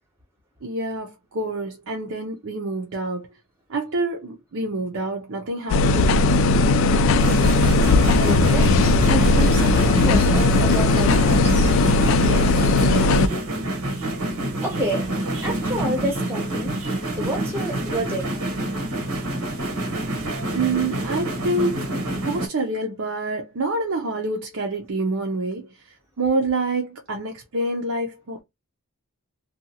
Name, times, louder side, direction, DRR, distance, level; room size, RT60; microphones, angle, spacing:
voice 1, 0.6-3.3 3.7-6.4 12.1-13.4 20.5-25.7 26.2-28.4, right 2 dB, 65° right, 0.6 m, -27 dB
sound 1, 5.7-13.3, left 3 dB, 60° left, 0.3 m, -17 dB
sound 2, 7.2-22.5, right 1 dB, 85° right, 1.0 m, -27 dB
voice 2, 8.1-8.7 9.1-11.7 14.6-15.1 15.4-16.7 17.2-18.3, right 1 dB, 10° right, 0.8 m, -29 dB
2.8 x 2.3 x 2.7 m
head